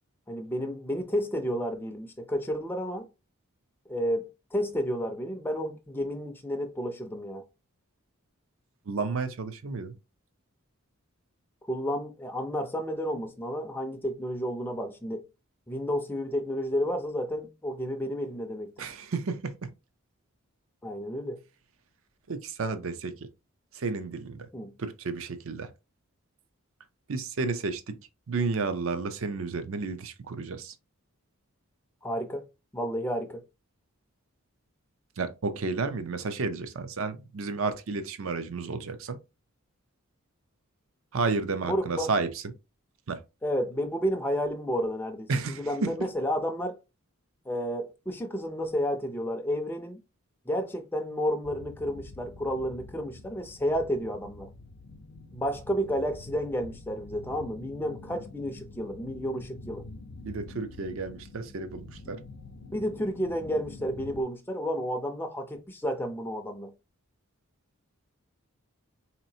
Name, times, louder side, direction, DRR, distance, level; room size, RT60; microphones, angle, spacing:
voice 1, 0.3-3.1 3.9-7.4 11.7-15.2 15.7-18.7 20.8-21.4 24.5-24.7 32.0-32.4 32.7-33.4 41.6-42.1 43.4-45.3 45.6-46.8 47.5-50.0 50.5-54.5 55.3-59.8 62.7-66.7, equal, 10° left, 0.4 m, -31 dB
voice 2, 8.9-9.9 18.8-19.7 22.3-23.3 23.7-24.5 24.8-25.7 27.1-28.0 28.3-30.7 35.2-39.2 41.1-42.5 43.1-43.2 45.3-45.9 60.2-62.2, right 4 dB, 65° right, 0.6 m, -32 dB
sound 1, 51.4-64.2, left 2 dB, 70° left, 0.5 m, -46 dB
4.0 x 2.9 x 2.7 m
head